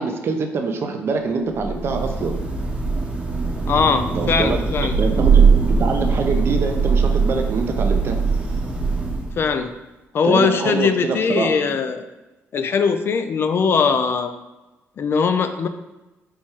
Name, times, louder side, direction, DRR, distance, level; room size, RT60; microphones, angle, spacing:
voice 1, 0.0-2.4 4.1-4.6 5.0-8.2 10.2-11.8, right 4 dB, 50° right, 5 dB, 0.6 m, -25 dB
Thunder / Rain, 1.5-9.6, right 5 dB, 20° right, 0.8 m, -20 dB
voice 2, 3.7-4.9 9.4-9.7 10.1-12.1 12.5-14.3 15.0-15.7, left 5 dB, 50° left, 9 dB, 0.4 m, -20 dB
4.4 x 2.3 x 4.4 m, 1.1 s
cardioid pair, 90°, 5 cm